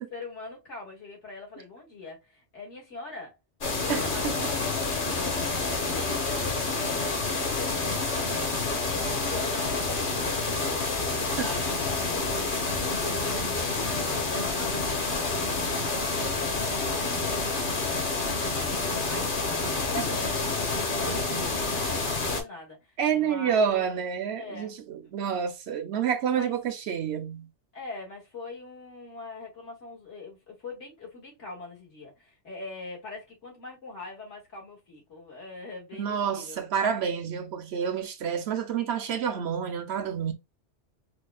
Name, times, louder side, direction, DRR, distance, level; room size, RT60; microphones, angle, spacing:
voice 1, 0.1-3.4 3.8-4.9 5.6-7.1 7.9-10.5 11.1-12.2 12.6-17.8 19.1-24.0 24.4-24.8 26.3-26.6 27.7-36.6, left 3 dB, 80° left, 2.2 m, -42 dB
sound 1, 3.6-22.4, left 3 dB, 50° left, 1.1 m, -28 dB
voice 2, 3.9-4.3 8.1-8.5 11.4-11.6 23.0-27.5 35.9-40.3, right 7 dB, 65° right, 0.9 m, -29 dB
4.9 x 2.3 x 2.3 m
omnidirectional pair, 1.2 m